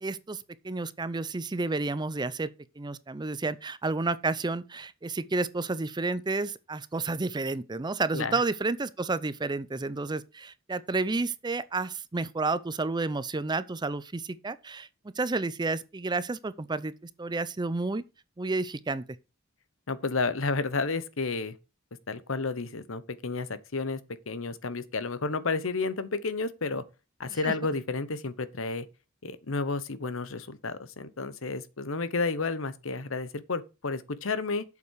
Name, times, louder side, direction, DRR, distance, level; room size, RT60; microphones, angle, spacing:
voice 1, 0.0-2.5 2.8-14.9 15.2-16.9 17.2-18.0 18.4-19.0 27.3-27.5, right 3 dB, 20° right, 0.5 m, -31 dB
voice 2, 19.9-21.5 22.1-24.0 24.3-26.8 27.2-28.9 29.2-34.6, left 3 dB, 70° left, 1.0 m, -31 dB
8.3 x 7.1 x 4.7 m
head